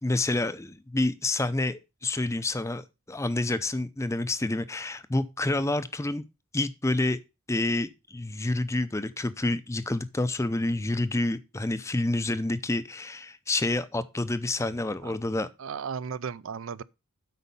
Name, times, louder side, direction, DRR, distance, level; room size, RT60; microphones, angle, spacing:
voice 1, 0.0-6.2 6.5-7.2 7.5-15.5, left 2 dB, 15° left, 0.5 m, -28 dB
voice 2, 15.6-16.8, right 6 dB, 65° right, 0.4 m, -35 dB
8.3 x 5.3 x 5.4 m
head